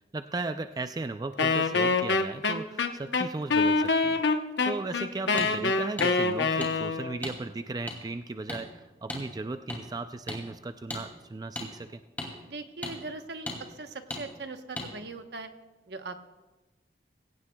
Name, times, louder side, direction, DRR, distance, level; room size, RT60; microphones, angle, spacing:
voice 1, 0.1-4.2 4.6-12.0, right 3 dB, 20° right, 9 dB, 0.3 m, -36 dB
Wind instrument woodwind instrument, 1.4-7.2, left 3 dB, 90° left, 0.9 m, -25 dB
sound 1, 5.4-5.5 6.0-6.1 6.6-6.7 7.2-7.4 7.9-8.0 8.5-8.6 9.1-9.2 9.7-9.8 10.3-10.4 10.9-11.0 11.6-11.7 12.2-12.3 12.8-12.9 13.5-13.6 14.1-14.2 14.8-14.9, left 1 dB, 10° left, 2.4 m, -35 dB
voice 2, 12.4-15.5 15.9-16.3, right 3 dB, 75° right, 7 dB, 1.0 m, -40 dB
21.5 x 17.0 x 2.3 m, 1.2 s
head